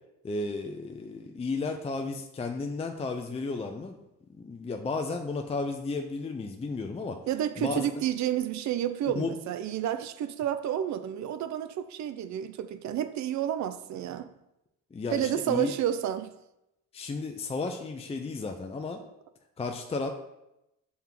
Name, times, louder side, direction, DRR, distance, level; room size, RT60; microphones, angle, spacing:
voice 1, 0.2-4.0 4.4-7.2 7.6-7.8 9.1-9.3 14.9-15.7 16.9-19.0 19.6-20.1, left 3 dB, 20° left, 0.5 m, -33 dB
voice 2, 7.3-14.3 15.1-16.3, right 10 dB, 65° right, 0.5 m, -30 dB
5.4 x 3.6 x 5.9 m
cardioid pair, 90°, 30 cm